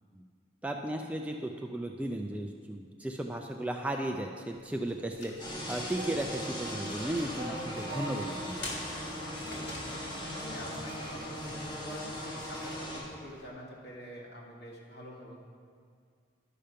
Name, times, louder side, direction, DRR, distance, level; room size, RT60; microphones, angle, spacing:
voice 1, 0.6-8.7, right 1 dB, 5° right, 2 dB, 0.3 m, -35 dB
sound 1, 4.5-13.5, left 2 dB, 80° left, 2.0 m, -49 dB
sound 2, 5.4-13.0, equal, 25° left, 2.0 m, -39 dB
sound 3, 6.0-10.2, right 2 dB, 75° right, 0.9 m, -44 dB
voice 2, 9.6-15.4, equal, 60° left, -4 dB, 1.7 m, -46 dB
11.5 x 5.1 x 5.6 m, 2.1 s
head